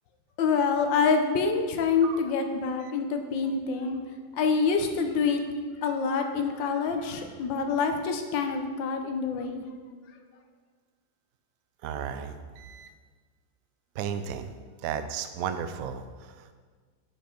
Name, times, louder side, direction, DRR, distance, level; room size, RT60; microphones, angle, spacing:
voice 1, 0.4-4.0 4.4-5.4 5.8-9.6, left 5 dB, 70° left, 5 dB, 1.5 m, -26 dB
voice 2, 11.8-12.9 14.0-14.5 14.8-16.5, right 8 dB, 75° right, 9 dB, 0.8 m, -34 dB
10.0 x 5.2 x 4.5 m, 1.5 s
omnidirectional pair, 2.1 m